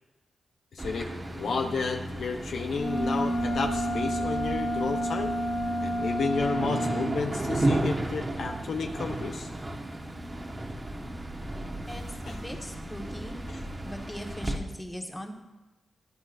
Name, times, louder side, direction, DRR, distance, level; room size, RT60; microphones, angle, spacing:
voice 1, 0.7-5.3 5.8-9.5 12.3-12.4 13.5-13.6, left 4 dB, 70° left, 4 dB, 0.8 m, -32 dB
sound 1, 0.8-14.6, right 1 dB, 25° right, 1.2 m, -34 dB
sound 2, 2.7-7.1, right 1 dB, 40° left, 4.0 m, -30 dB
voice 2, 11.9-13.4 13.8-15.3, equal, 15° left, 2 dB, 1.5 m, -40 dB
16.0 x 9.7 x 2.6 m, 1.1 s
cardioid pair, 65°, 0 cm